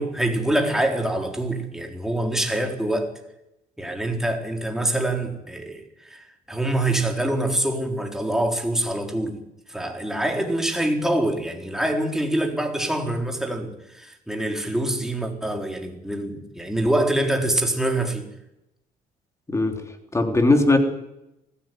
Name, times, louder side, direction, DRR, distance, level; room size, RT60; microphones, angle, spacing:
voice 1, 0.0-3.1 3.8-9.4 9.7-18.3, right 1 dB, 5° right, 4.1 m, -25 dB
voice 2, 19.5-19.8 20.1-20.8, left 2 dB, 15° left, 3.5 m, -19 dB
21.0 x 15.5 x 9.4 m
cardioid pair, 110°, 17 cm